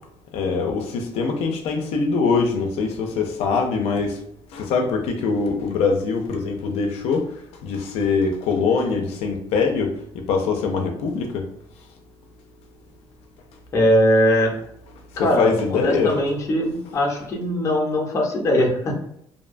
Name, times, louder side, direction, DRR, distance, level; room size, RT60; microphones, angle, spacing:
voice 1, 0.3-4.2 4.5-11.5 15.2-16.2, left 4 dB, 85° left, 3 dB, 0.4 m, -23 dB
voice 2, 13.7-14.5 15.2-18.9, equal, 30° left, -1 dB, 0.5 m, -20 dB
2.6 x 2.1 x 2.4 m, 0.70 s
cardioid pair, 155°, 10 cm